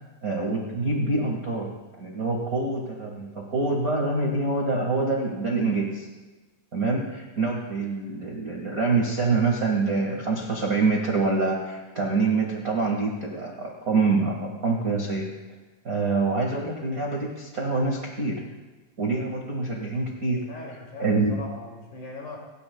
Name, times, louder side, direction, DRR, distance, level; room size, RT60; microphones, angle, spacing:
voice 1, 0.2-6.1 6.7-15.3 15.8-18.4 19.0-20.4 21.0-21.3, right 3 dB, 40° right, -2 dB, 1.2 m, -26 dB
voice 2, 20.5-22.4, left 3 dB, 60° left, -1 dB, 3.7 m, -39 dB
27.5 x 10.5 x 2.2 m, 1.2 s
omnidirectional pair, 4.1 m